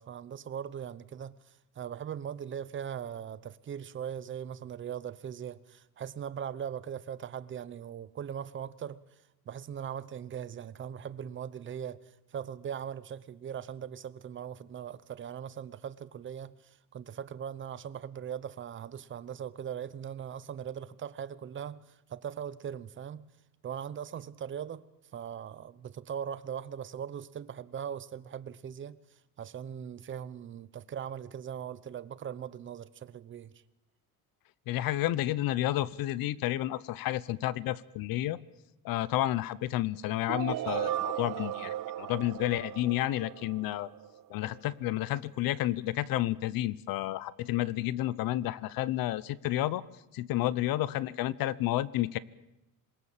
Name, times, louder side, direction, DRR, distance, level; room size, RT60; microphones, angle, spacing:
voice 1, 0.0-9.0 9.4-23.3 23.6-24.8 25.1-29.0 29.4-33.5 50.4-50.5, right 8 dB, 30° right, 0.9 m, -40 dB
voice 2, 34.7-38.4 38.8-43.9 44.3-49.8 50.1-52.2, left 15 dB, 65° left, 1.0 m, -31 dB
sound 1, 40.3-44.2, right 12 dB, 60° right, 1.3 m, -36 dB
27.0 x 21.5 x 7.5 m
cardioid pair, 170°, 37 cm